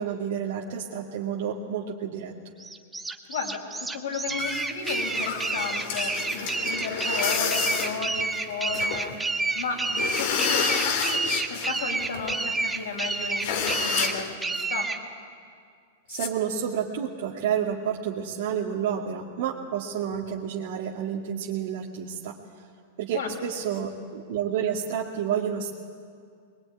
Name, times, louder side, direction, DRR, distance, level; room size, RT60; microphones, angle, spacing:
voice 1, 0.0-2.3 16.1-22.4 23.0-25.7, right 8 dB, 60° right, -4 dB, 2.2 m, -30 dB
sound 1, 2.6-15.0, right 3 dB, 10° right, 1.6 m, -29 dB
voice 2, 3.3-14.9 23.1-23.3, left 4 dB, 75° left, 2 dB, 5.9 m, -34 dB
sound 2, 4.4-9.2 9.5-9.6 9.9-11.7 12.0-12.4 12.8-12.9 13.0-13.1 13.4-14.3 16.1-16.3, left 6 dB, 60° left, 2.8 m, -29 dB
22.5 x 22.0 x 9.7 m, 2.2 s
hypercardioid pair, 110°, 0 cm